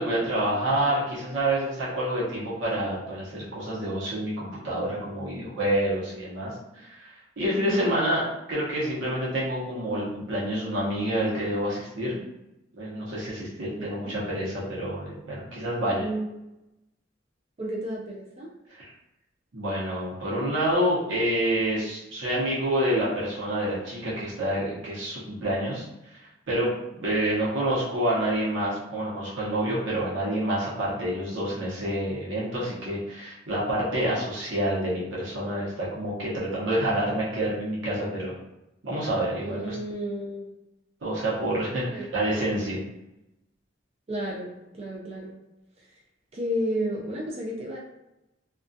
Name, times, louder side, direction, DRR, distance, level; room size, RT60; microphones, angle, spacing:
voice 1, 0.0-8.2 8.5-12.2 12.8-16.1 18.7-18.9 19.5-26.2 26.5-26.7 27.0-38.3 38.8-39.8 41.0-42.8, right 1 dB, 75° right, -7 dB, 0.8 m, -28 dB
voice 2, 13.8-14.1 16.0-16.3 17.6-18.5 39.4-40.5 41.9-42.2 44.1-45.3 45.8-45.9 46.3-47.8, right 1 dB, 35° right, -3 dB, 0.4 m, -32 dB
2.3 x 2.3 x 2.5 m, 0.92 s
head